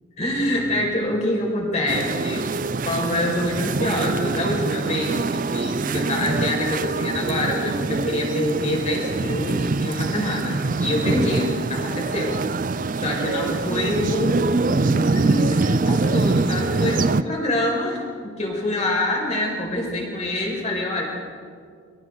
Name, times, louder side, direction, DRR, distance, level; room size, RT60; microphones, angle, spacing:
voice 1, 0.2-2.5 2.8-12.4 13.0-21.0, left 1 dB, 35° left, -1 dB, 5.5 m, -26 dB
sound 1, 1.9-17.2, right 3 dB, 40° right, 0.5 m, -24 dB
29.5 x 26.0 x 4.0 m, 2.1 s
head